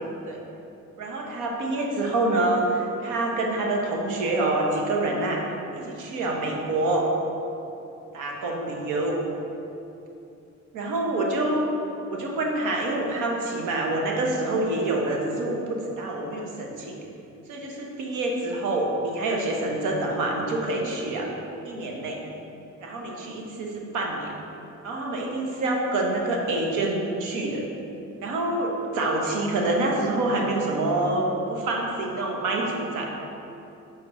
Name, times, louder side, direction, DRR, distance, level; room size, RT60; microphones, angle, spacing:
voice 1, 1.0-5.4 5.7-7.1 8.1-9.2 10.7-11.7 12.1-17.0 17.5-21.3 21.6-22.2 22.8-24.3 24.8-27.7 28.2-33.1, right 2 dB, 90° right, 0 dB, 1.0 m, -26 dB
6.1 x 3.7 x 5.4 m, 2.8 s
cardioid pair, 90°, 30 cm